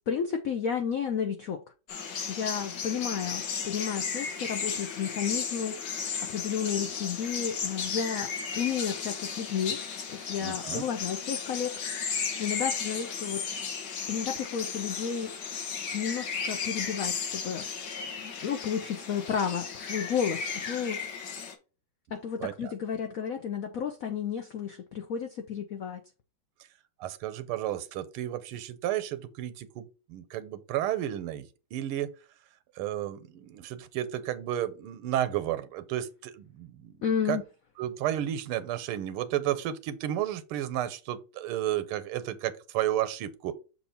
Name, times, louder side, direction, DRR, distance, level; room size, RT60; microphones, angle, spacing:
voice 1, 0.1-1.6 2.3-5.8 6.3-8.3 8.6-9.8 10.1-12.0 12.4-13.6 14.1-15.3 15.9-17.7 18.2-21.0 22.1-26.0 37.0-37.4, left 7 dB, 80° left, 0.7 m, -32 dB
sound 1, 1.9-21.5, left 6 dB, 60° left, 1.6 m, -35 dB
voice 2, 10.4-10.8 22.4-22.7 27.0-32.1 32.8-37.0 37.3-37.4 37.8-43.5, right 12 dB, 90° right, 1.6 m, -32 dB
6.9 x 2.8 x 5.7 m
omnidirectional pair, 2.3 m